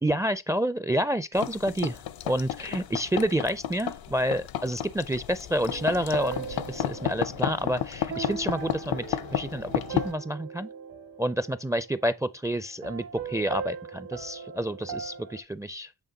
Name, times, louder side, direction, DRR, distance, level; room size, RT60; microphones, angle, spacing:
voice 1, 0.0-10.7 11.2-15.9, equal, 10° right, 0.4 m, -29 dB
sound 1, 1.3-10.1, left 10 dB, 75° left, 0.7 m, -33 dB
sound 2, 5.6-12.2 12.8-15.4, right 6 dB, 75° right, 1.6 m, -39 dB
8.2 x 3.5 x 3.9 m
cardioid pair, 65°, 36 cm